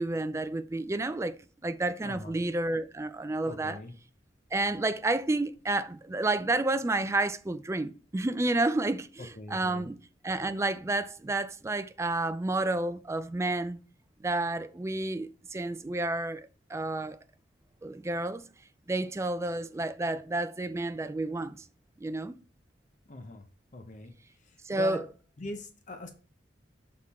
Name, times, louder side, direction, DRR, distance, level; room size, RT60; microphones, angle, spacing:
voice 1, 0.0-3.8 4.5-10.0 10.2-13.8 14.2-17.2 17.8-18.4 18.9-21.6 22.0-22.4 24.6-25.0, right 2 dB, 15° right, 0.3 m, -30 dB
voice 2, 2.0-2.5 3.4-3.9 9.4-9.9 23.1-23.4 23.7-24.1 24.4-25.0 25.4-26.1, left 2 dB, 40° left, 0.7 m, -41 dB
6.4 x 3.7 x 4.2 m
head